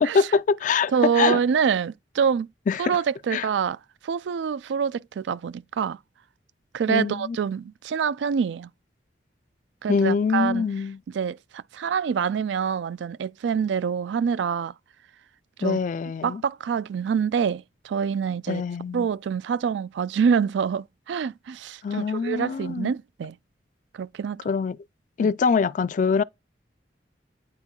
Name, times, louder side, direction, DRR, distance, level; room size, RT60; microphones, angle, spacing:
voice 1, 0.0-1.4 2.7-3.0 3.3-3.5 6.9-7.4 9.9-11.0 15.6-16.4 18.5-19.1 21.8-22.9 24.5-24.8 25.2-26.2, left 5 dB, 45° left, 0.3 m, -24 dB
voice 2, 0.9-2.5 2.8-3.8 4.0-6.0 6.7-8.7 9.8-10.7 11.1-14.7 15.6-15.8 16.2-18.6 18.9-23.4 23.9-24.4 25.2-25.3, right 7 dB, 80° right, 0.3 m, -26 dB
9.7 x 4.4 x 2.3 m
head